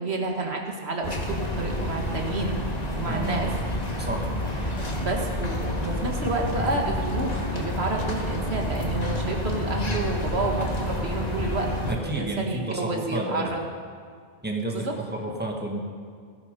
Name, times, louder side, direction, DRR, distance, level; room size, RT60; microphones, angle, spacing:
voice 1, 0.0-2.6 3.0-3.5 4.0-4.1 4.6-13.6 14.7-14.9, right 3 dB, 90° right, 1 dB, 2.0 m, -30 dB
sound 1, 1.0-11.9, left 1 dB, 40° left, 1.8 m, -29 dB
voice 2, 3.1-3.4 4.0-4.3 11.9-13.5 14.4-15.8, right 1 dB, 10° right, 0 dB, 1.7 m, -31 dB
16.0 x 13.5 x 5.3 m, 2.1 s
omnidirectional pair, 1.0 m